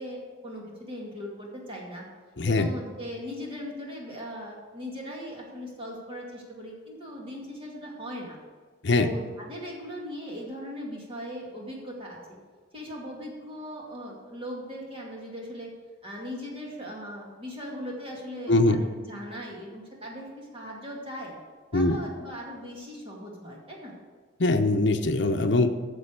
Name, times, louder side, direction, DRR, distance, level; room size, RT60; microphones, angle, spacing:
voice 1, 0.0-2.0 2.5-8.4 8.9-12.2 12.7-15.7 16.0-21.3 21.7-23.9, equal, 30° right, -3 dB, 2.2 m, -39 dB
voice 2, 2.4-2.7 8.8-9.1 18.5-18.8 21.7-22.0 24.4-25.7, left 2 dB, 65° left, 4 dB, 0.7 m, -22 dB
9.9 x 6.9 x 6.7 m, 1.4 s
head